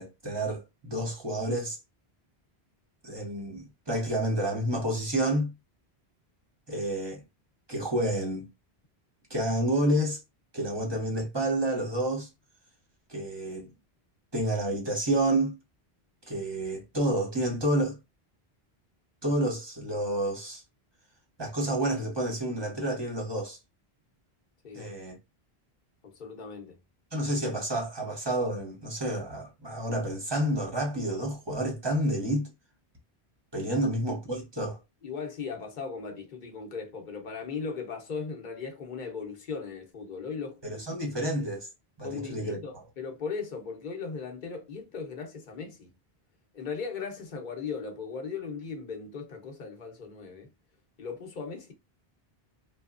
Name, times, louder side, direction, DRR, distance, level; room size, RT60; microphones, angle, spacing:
voice 1, 0.0-1.8 3.0-5.5 6.7-7.2 7.7-8.5 9.3-10.2 10.5-12.3 13.1-13.7 14.3-15.6 16.3-18.0 19.2-20.6 21.4-23.6 24.7-25.2 27.1-32.5 33.5-34.8 40.6-41.7 42.0-42.8, right 1 dB, 30° right, 0.8 m, -29 dB
voice 2, 24.6-24.9 26.0-26.8 33.7-33.9 35.0-40.8 42.0-45.9 46.5-50.5 51.0-51.7, left 5 dB, 55° left, 0.8 m, -38 dB
2.9 x 2.1 x 2.4 m
omnidirectional pair, 1.1 m